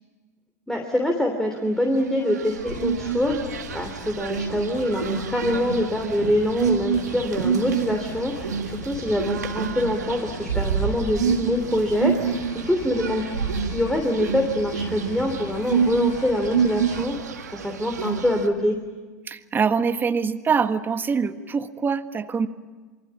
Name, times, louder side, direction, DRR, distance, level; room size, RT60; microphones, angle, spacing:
voice 1, 0.7-13.2 13.6-18.8, left 1 dB, 5° left, 2 dB, 3.3 m, -25 dB
sound 1, 2.0-18.5, right 6 dB, 80° right, 2.1 m, -28 dB
sound 2, 2.6-17.0, left 4 dB, 55° left, 5.1 m, -41 dB
voice 2, 19.3-22.5, right 5 dB, 20° right, 10 dB, 1.5 m, -24 dB
27.5 x 24.0 x 8.7 m, 1.4 s
figure-of-eight pair, 85°, 9 cm